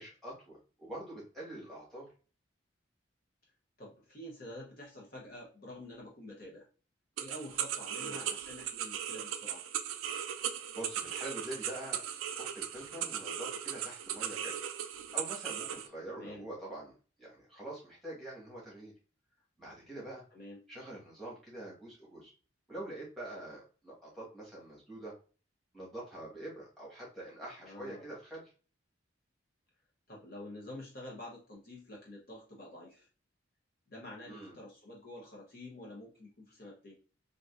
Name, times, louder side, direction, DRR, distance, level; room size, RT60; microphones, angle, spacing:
voice 1, 0.0-2.1 8.0-8.3 10.1-10.2 10.7-12.0 12.3-14.6 15.1-18.9 19.6-20.2 20.7-22.3 22.7-25.1 25.7-28.4 34.3-34.6, right 1 dB, ahead, -6 dB, 1.4 m, -45 dB
voice 2, 3.8-6.6 7.2-9.6 16.1-16.5 20.3-20.6 27.6-28.1 30.1-33.1 33.9-36.9, left 1 dB, 45° left, -3 dB, 0.8 m, -48 dB
sound 1, 7.2-15.9, right 9 dB, 85° right, 0.4 m, -38 dB
3.7 x 2.7 x 2.4 m, 0.37 s
head